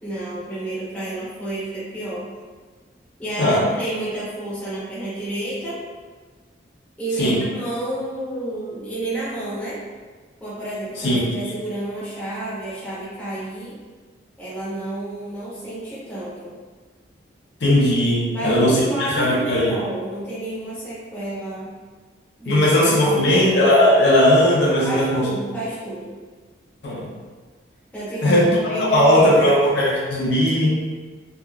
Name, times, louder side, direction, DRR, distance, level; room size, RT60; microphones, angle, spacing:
voice 1, 0.0-2.3 3.2-5.8 7.0-9.8 10.4-13.7 14.4-16.5 18.3-21.7 22.4-22.7 23.0-23.5 24.8-26.2 27.9-29.6, right 1 dB, 10° left, -10 dB, 0.7 m, -30 dB
voice 2, 17.6-19.8 22.5-25.3 26.8-27.1 28.2-30.8, left 1 dB, 65° left, -4 dB, 0.6 m, -17 dB
3.5 x 2.4 x 2.2 m, 1.4 s
head